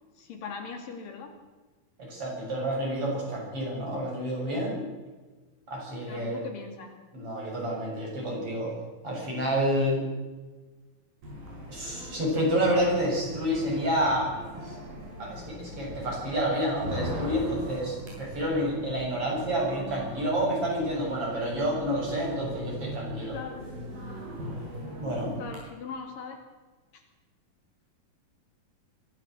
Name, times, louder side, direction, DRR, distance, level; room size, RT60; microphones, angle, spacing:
voice 1, 0.2-1.4 6.1-7.0 23.3-23.7 25.4-26.4 26.9-27.0, left 5 dB, 70° left, 4 dB, 4.1 m, -40 dB
voice 2, 2.0-4.8 5.7-6.4 7.1-8.7 9.0-10.0 11.7-14.8 15.2-23.4 25.0-25.3, equal, 40° right, -2 dB, 8.2 m, -29 dB
sound 1, 11.2-25.6, equal, 90° right, 8.9 m, -39 dB
23.0 x 15.0 x 7.8 m, 1.3 s
omnidirectional pair, 4.1 m